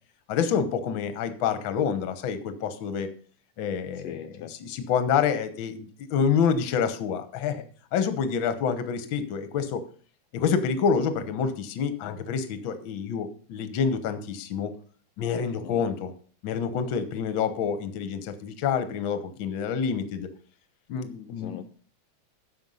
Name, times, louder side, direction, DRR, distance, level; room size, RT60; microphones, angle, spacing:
voice 1, 0.3-3.1 3.6-4.2 4.5-7.6 7.9-9.8 10.3-14.7 15.2-16.1 16.4-20.3 20.9-21.6, left 6 dB, 65° left, 10 dB, 1.3 m, -27 dB
voice 2, 3.9-4.5 15.6-15.9 21.4-21.6, left 11 dB, 85° left, 6 dB, 1.3 m, -40 dB
10.5 x 6.6 x 5.5 m, 0.43 s
omnidirectional pair, 3.4 m